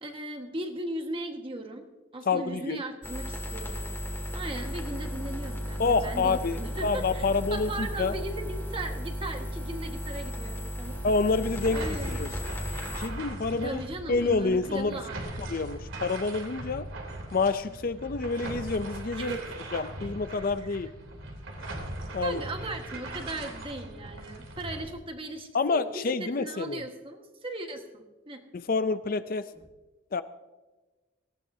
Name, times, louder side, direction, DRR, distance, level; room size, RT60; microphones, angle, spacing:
voice 1, 0.0-3.9 4.3-11.0 11.7-12.2 13.5-15.5 19.2-19.5 20.4-20.7 22.2-28.4, right 1 dB, 25° right, 4 dB, 1.5 m, -38 dB
voice 2, 2.3-2.8 5.8-8.2 11.0-12.3 12.9-13.8 14.1-15.0 15.4-16.9 17.3-19.4 19.7-20.9 22.1-22.4 25.5-26.8 28.5-29.5 30.1-30.2, left 4 dB, 45° left, 12 dB, 0.5 m, -28 dB
sound 1, 3.0-13.1, equal, 10° left, 2.0 m, -35 dB
sound 2, 10.8-24.8, right 1 dB, 75° right, 3.1 m, -39 dB
18.5 x 16.0 x 2.8 m, 1.2 s
head